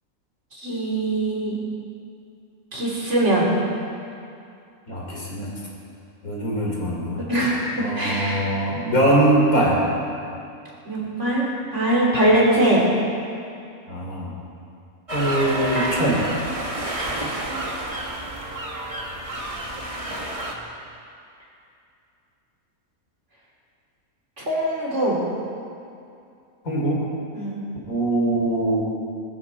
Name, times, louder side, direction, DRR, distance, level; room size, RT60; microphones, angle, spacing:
voice 1, 0.6-1.6 2.7-3.5 7.3-8.5 10.9-11.5 11.7-12.8 17.3-17.7 24.4-25.2 27.3-27.6, right 1 dB, 55° right, -5 dB, 3.7 m, -22 dB
voice 2, 4.9-5.5 6.2-7.2 7.8-9.8 13.9-14.3 15.1-16.2 26.6-27.0 27.9-28.8, right 1 dB, 80° left, -3 dB, 3.9 m, -22 dB
sound 1, 15.1-20.5, right 1 dB, 25° right, 1.4 m, -29 dB
21.0 x 13.5 x 4.2 m, 2.5 s
omnidirectional pair, 1.5 m